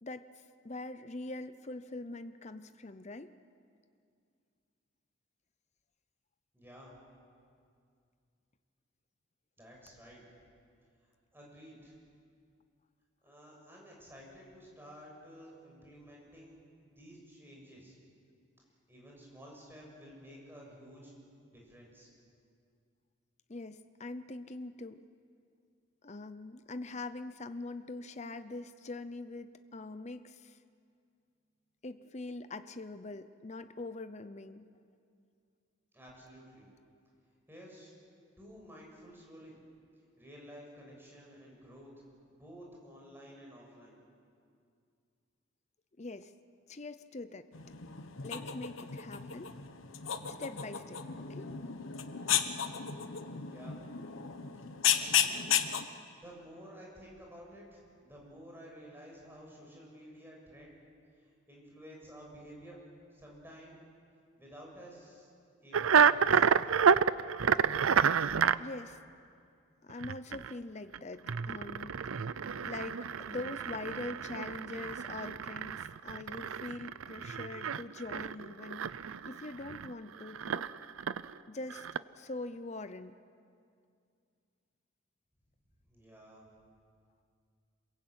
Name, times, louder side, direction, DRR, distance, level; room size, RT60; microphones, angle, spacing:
voice 1, 0.6-3.3 23.5-25.0 26.0-30.6 31.8-34.7 46.0-46.3 46.7-47.5 48.2-49.5 50.3-51.5 68.6-69.0 69.8-72.1 72.6-80.6 81.5-81.9 82.2-83.2, left 2 dB, 35° left, 11 dB, 0.7 m, -43 dB
voice 2, 6.5-6.9 9.6-10.2 11.3-11.9 13.2-16.6 16.8-17.9 18.9-21.1 21.5-22.1 35.9-36.7 37.5-37.9 38.4-39.6 40.2-41.9 42.3-44.0 53.5-53.8 54.9-55.7 56.2-60.8 61.2-62.8 63.1-63.8 64.4-65.3 65.6-66.6 85.9-86.4, equal, 10° right, -2 dB, 7.0 m, -52 dB
sound 1, 47.5-55.9, left 9 dB, 75° left, 1.2 m, -34 dB
sound 2, 65.7-68.6 69.9-70.5 70.9-71.0 71.3-79.9 80.2-81.3 81.7-82.0, right 7 dB, 85° right, 0.6 m, -30 dB
27.0 x 22.0 x 8.9 m, 2.3 s
head